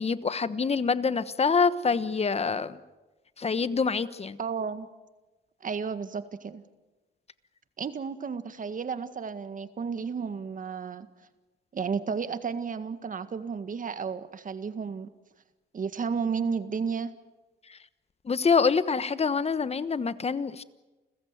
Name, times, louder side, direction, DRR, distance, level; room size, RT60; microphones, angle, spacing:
voice 1, 0.0-2.8 3.4-4.4 17.7-17.8 18.2-20.6, left 5 dB, 30° left, 14 dB, 1.2 m, -26 dB
voice 2, 4.4-4.9 5.6-6.6 7.8-11.1 11.7-15.1 15.7-17.1, right 6 dB, 40° right, 11 dB, 1.8 m, -32 dB
29.5 x 15.0 x 9.4 m, 1.1 s
cardioid pair, 90°, 20 cm